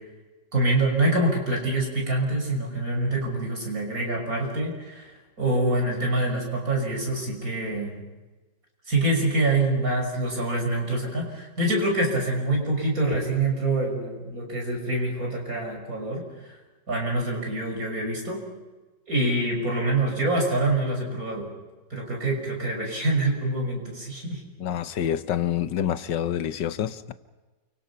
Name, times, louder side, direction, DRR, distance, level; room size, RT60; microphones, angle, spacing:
voice 1, 0.5-5.1 5.4-8.0 8.9-16.2 16.9-18.4 19.1-21.5 21.9-24.4, right 2 dB, 55° right, 1 dB, 6.5 m, -25 dB
voice 2, 24.6-27.1, left 10 dB, 85° left, 12 dB, 1.6 m, -27 dB
29.0 x 24.5 x 5.8 m, 1.2 s
omnidirectional pair, 1.9 m